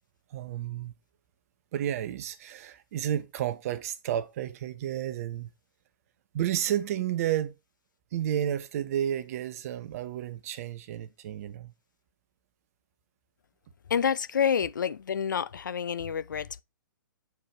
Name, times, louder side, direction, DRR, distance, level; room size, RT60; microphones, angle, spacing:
voice 1, 0.3-0.9 1.7-5.5 6.3-7.5 8.1-11.7, right 11 dB, 45° right, 0.9 m, -31 dB
voice 2, 13.9-16.6, left 7 dB, 65° left, 0.6 m, -28 dB
8.0 x 4.7 x 4.5 m
figure-of-eight pair, 115°, 11 cm